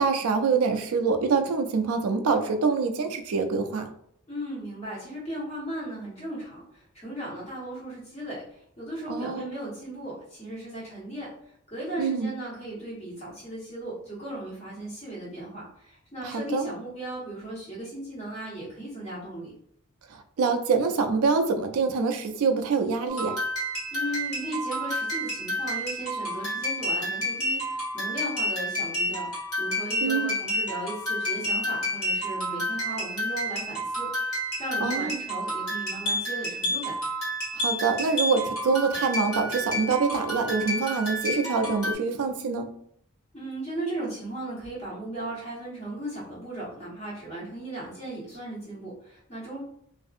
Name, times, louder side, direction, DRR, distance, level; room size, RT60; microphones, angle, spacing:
voice 1, 0.0-3.9 9.1-9.5 12.0-12.3 16.2-16.7 20.1-23.4 30.0-30.3 34.8-35.2 37.5-42.7, right 5 dB, 80° right, 6 dB, 0.4 m, -25 dB
voice 2, 4.3-11.3 11.7-19.6 23.9-37.0 43.3-49.6, right 1 dB, 30° left, -7 dB, 1.3 m, -36 dB
sound 1, 23.1-41.9, equal, 80° left, 1.4 m, -30 dB
2.6 x 2.5 x 2.4 m, 0.68 s
head